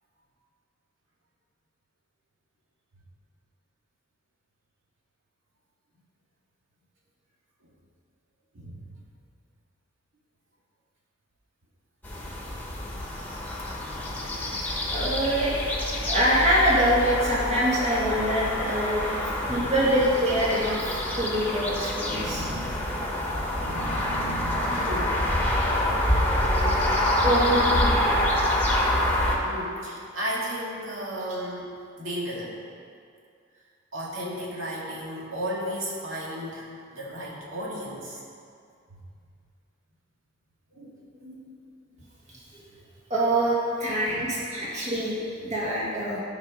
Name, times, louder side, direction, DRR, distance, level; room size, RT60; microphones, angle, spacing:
voice 1, 8.5-8.9 14.1-14.2 19.3-20.1 22.0-23.0 23.4-25.4 29.4-32.6 33.9-38.2 38.9-39.0 40.7-41.4 44.0-44.5, equal, 85° right, -4 dB, 2.2 m, -35 dB
sound 1, 12.0-29.4, left 1 dB, 10° left, 1.3 m, -26 dB
voice 2, 14.9-15.6 16.0-22.4 27.2-28.1 42.5-42.6 43.1-46.2, equal, 35° right, -7 dB, 1.8 m, -25 dB
12.5 x 5.2 x 5.1 m, 2.4 s
head